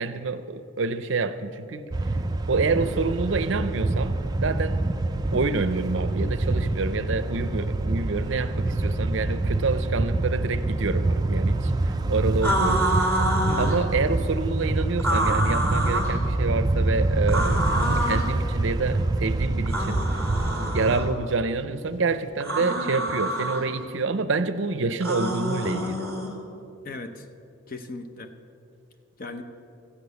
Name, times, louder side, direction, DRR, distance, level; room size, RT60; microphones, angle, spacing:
voice 1, 0.0-1.9 2.5-4.2 4.4-4.8 5.3-11.7 12.1-12.9 13.6-20.0 20.7-26.1, right 4 dB, 60° right, 12 dB, 0.6 m, -27 dB
sound 1, 1.9-21.1, right 2 dB, 20° right, 0.4 m, -26 dB
sound 2, 12.4-13.8 15.0-16.2 17.3-18.3 19.7-21.1 22.4-23.6 25.0-26.3, right 1 dB, 10° left, 2.1 m, -27 dB
voice 2, 13.5-13.8 26.8-27.2 27.7-28.3 29.2-29.4, left 2 dB, 40° left, 7 dB, 0.8 m, -36 dB
14.0 x 8.3 x 6.9 m, 2.6 s
head